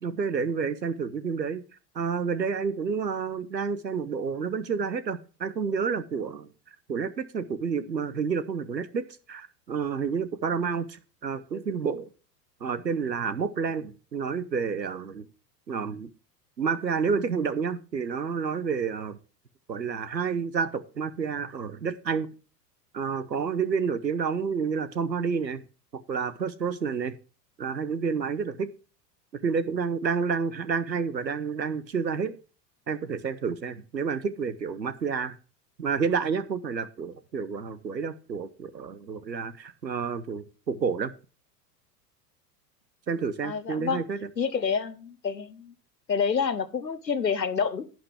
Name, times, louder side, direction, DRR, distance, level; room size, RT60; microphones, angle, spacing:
voice 1, 0.0-1.6 1.9-6.5 6.9-9.0 9.3-12.1 12.6-15.3 15.7-16.1 16.6-19.2 19.7-22.3 22.9-25.6 26.1-27.1 27.6-28.7 29.4-32.4 32.9-35.4 35.8-41.1 43.1-44.2, right 6 dB, 85° right, 16 dB, 1.0 m, -29 dB
voice 2, 43.4-44.0 44.4-45.7 46.1-47.8, left 6 dB, 90° left, 15 dB, 1.0 m, -28 dB
11.0 x 9.0 x 3.4 m, 0.35 s
figure-of-eight pair, 80°, 50 cm